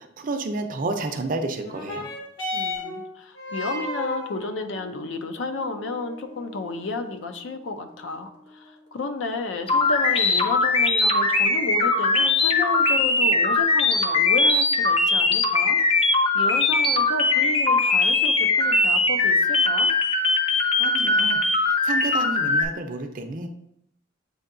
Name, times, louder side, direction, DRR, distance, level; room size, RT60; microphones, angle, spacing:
voice 1, 0.0-2.1 20.8-23.5, right 3 dB, 45° right, 6 dB, 0.5 m, -31 dB
sound 1, 1.6-10.6 11.4-11.5, left 1 dB, 65° left, 1.1 m, -36 dB
voice 2, 2.5-15.8 16.3-19.9, left 3 dB, 80° left, 7 dB, 0.5 m, -32 dB
sound 2, 9.7-22.6, left 3 dB, 30° left, 0.4 m, -20 dB
7.7 x 2.7 x 2.6 m, 0.76 s
head